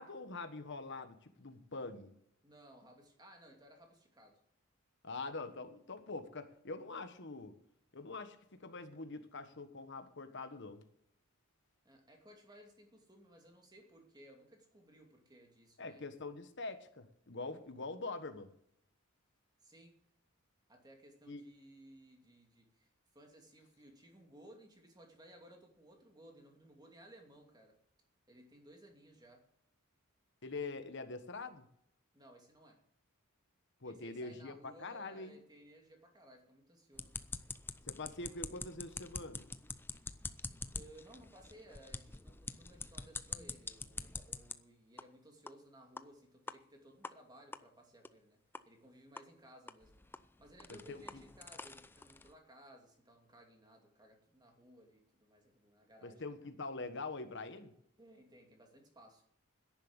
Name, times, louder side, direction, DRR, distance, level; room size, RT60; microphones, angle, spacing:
voice 1, 0.0-2.1 5.0-7.6 7.9-10.8 15.8-18.5 21.3-21.4 30.4-31.6 33.8-34.5 34.8-35.4 37.8-39.5 50.9-51.2 56.0-57.7, left 3 dB, 55° left, 8 dB, 1.3 m, -44 dB
voice 2, 2.4-4.4 11.8-16.0 19.6-19.9 20.7-27.7 28.3-29.4 32.1-32.8 33.8-37.1 40.1-48.4 48.7-50.0 50.4-56.3 58.0-59.2, right 1 dB, 20° right, 3 dB, 2.6 m, -59 dB
sound 1, 36.9-44.5 45.0-45.1 45.5-45.6 46.0-46.1 46.5-46.6 47.0-47.1 47.5-47.6 48.0-48.1 48.5-48.6 49.2-49.3 49.7-52.3, left 3 dB, 10° left, 0.5 m, -46 dB
11.0 x 10.5 x 8.1 m, 0.72 s
head